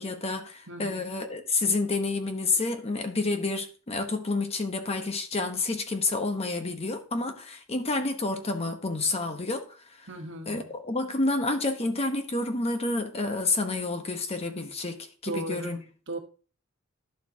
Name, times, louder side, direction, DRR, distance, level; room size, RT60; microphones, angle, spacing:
voice 1, 0.0-9.6 10.0-10.1 10.5-15.8, left 3 dB, 30° left, 1.0 m, -29 dB
voice 2, 0.7-1.0 10.1-10.7 15.3-16.2, right 1 dB, 60° right, 1.2 m, -37 dB
11.5 x 6.8 x 2.8 m
head